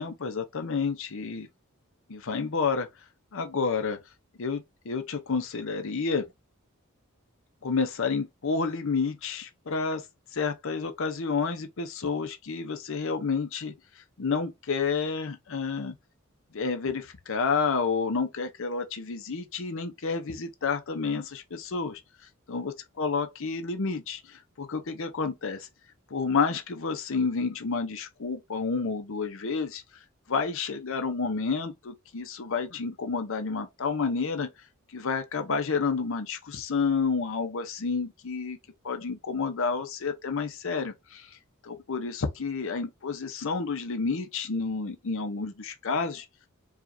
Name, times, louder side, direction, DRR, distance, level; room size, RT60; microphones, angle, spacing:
voice 1, 0.0-1.5 2.1-2.9 3.3-4.0 4.4-6.3 7.6-10.0 10.3-13.7 14.2-15.9 16.5-22.0 22.5-22.7 23.0-25.7 26.1-29.8 30.3-34.5 34.9-38.6 38.8-41.4 41.6-46.3, left 5 dB, 65° left, 0.7 m, -30 dB
4.8 x 2.5 x 2.6 m
head